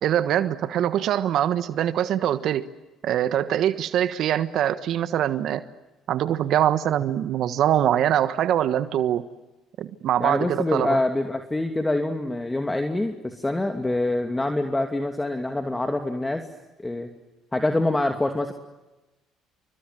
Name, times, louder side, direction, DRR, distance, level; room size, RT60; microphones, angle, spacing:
voice 1, 0.0-2.6 3.0-5.6 6.1-9.3 9.8-11.0, right 11 dB, 60° right, 12 dB, 1.4 m, -23 dB
voice 2, 10.2-16.5 16.8-17.1 17.5-18.5, left 2 dB, 15° left, 5 dB, 2.7 m, -25 dB
29.5 x 24.5 x 7.7 m, 1.1 s
hypercardioid pair, 60°, 0 cm